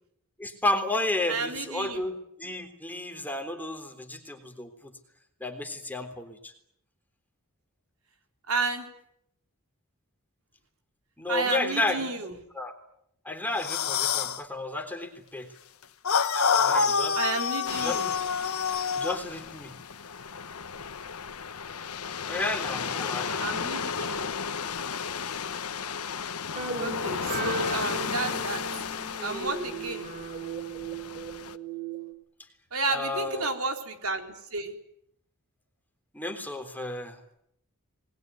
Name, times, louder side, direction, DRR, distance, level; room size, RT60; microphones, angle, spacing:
voice 1, 0.4-4.9 5.4-6.5 11.2-12.1 12.5-12.7 13.3-15.5 16.6-17.2 17.8-18.0 19.0-19.7 22.3-23.4 32.9-33.5 36.1-37.2, left 2 dB, 10° left, 5 dB, 3.6 m, -32 dB
voice 2, 1.3-2.0 8.5-8.9 11.3-12.4 17.1-18.1 23.4-24.3 26.8-28.6 29.2-30.1 32.7-34.8, right 3 dB, 70° right, 4 dB, 4.1 m, -31 dB
sound 1, 13.6-14.4 16.0-19.2, left 6 dB, 70° left, 1.5 m, -26 dB
sound 2, 17.6-31.5, left 6 dB, 90° left, 1.2 m, -34 dB
sound 3, 26.6-32.1, right 4 dB, 40° right, 4.4 m, -37 dB
27.5 x 21.0 x 9.5 m, 0.76 s
head